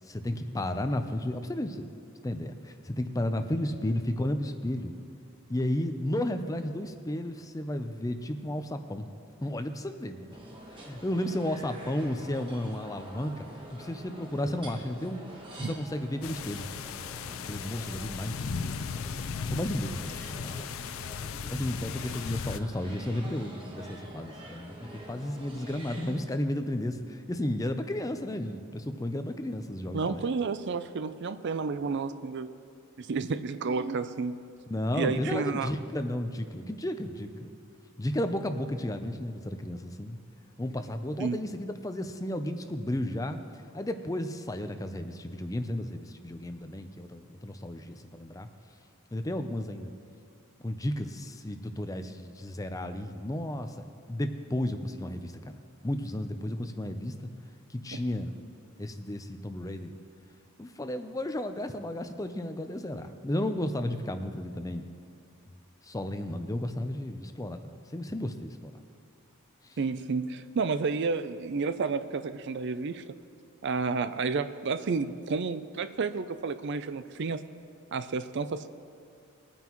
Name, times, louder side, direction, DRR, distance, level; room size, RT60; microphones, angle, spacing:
voice 1, 0.1-1.9 2.2-4.9 5.5-9.1 9.4-10.4 10.7-13.5 13.7-15.2 15.5-16.7 17.5-20.7 21.5-24.8 25.1-30.3 34.7-37.5 38.0-40.2 40.6-43.4 43.7-48.5 49.1-49.9 50.6-55.6 55.8-57.1 57.7-58.3 58.8-59.9 60.6-64.9 65.8-68.7 69.7-69.8, left 1 dB, 15° left, 8 dB, 0.5 m, -33 dB
sound 1, 10.3-26.2, right 1 dB, 25° right, 1.3 m, -47 dB
sound 2, 16.2-22.6, left 6 dB, 65° left, 0.4 m, -36 dB
voice 2, 29.9-32.5 33.0-34.4 34.9-35.7 41.2-41.4 57.9-58.0 69.8-73.2 73.6-77.4 77.9-78.7, right 4 dB, 55° right, 12 dB, 0.4 m, -31 dB
21.5 x 9.2 x 3.0 m, 2.3 s
head